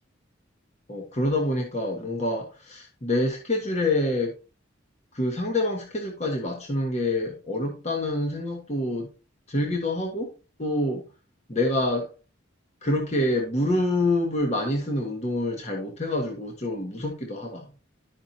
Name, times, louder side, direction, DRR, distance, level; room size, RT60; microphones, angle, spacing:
voice 1, 0.9-4.4 5.1-9.1 9.5-10.3 10.6-11.0 11.5-12.1 12.8-17.7, left 1 dB, 35° left, 1.3 m, -26 dB
11.5 x 5.8 x 2.8 m
head